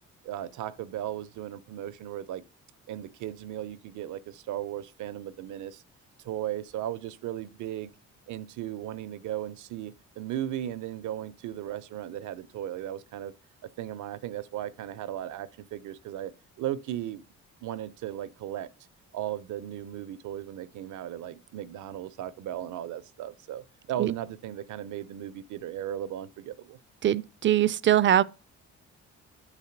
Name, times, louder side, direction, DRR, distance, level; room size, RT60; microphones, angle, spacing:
voice 1, 0.2-2.4 2.9-5.8 6.2-7.9 8.3-13.3 13.8-16.3 16.6-17.2 17.6-18.7 19.1-26.8, right 12 dB, 80° right, 0.6 m, -36 dB
voice 2, 27.0-28.2, right 11 dB, 40° right, 0.4 m, -22 dB
9.2 x 4.1 x 5.8 m
cardioid pair, 90°, 30 cm